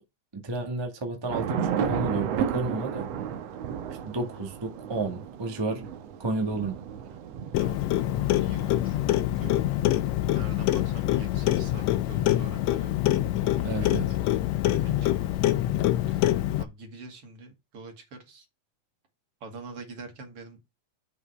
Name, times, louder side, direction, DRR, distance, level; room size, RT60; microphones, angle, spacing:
voice 1, 0.3-3.1 4.0-5.9 6.2-6.8 13.6-14.0, right 2 dB, 25° right, 0.6 m, -31 dB
Thunder / Rain, 1.3-13.8, right 8 dB, 70° right, 1.8 m, -35 dB
Clock, 7.5-16.6, left 14 dB, 75° left, 1.6 m, -25 dB
voice 2, 7.6-9.9 10.3-12.9 13.4-14.0 14.3-15.6 16.0-16.3 16.6-18.5 19.4-20.6, right 3 dB, 50° right, 3.0 m, -45 dB
8.1 x 5.5 x 4.8 m
omnidirectional pair, 3.5 m